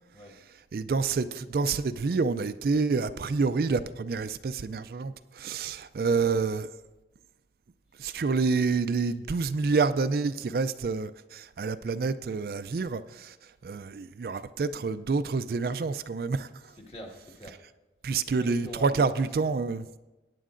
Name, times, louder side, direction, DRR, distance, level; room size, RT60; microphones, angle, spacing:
voice 1, 0.7-6.7 8.0-13.4 13.6-16.5 18.0-20.0, right 4 dB, 55° right, 0.4 m, -28 dB
voice 2, 16.6-17.5 18.3-19.6, equal, 35° left, 1.7 m, -45 dB
18.5 x 9.2 x 2.5 m
head